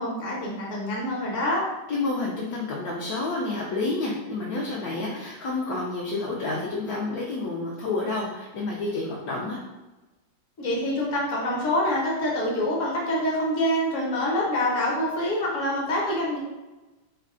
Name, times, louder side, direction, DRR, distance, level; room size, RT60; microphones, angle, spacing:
voice 1, 0.0-1.6 10.6-16.4, left 1 dB, 50° left, -4 dB, 1.2 m, -26 dB
voice 2, 1.9-9.6, left 3 dB, 70° left, -4 dB, 1.0 m, -29 dB
3.2 x 2.3 x 3.6 m, 1.1 s
omnidirectional pair, 1.9 m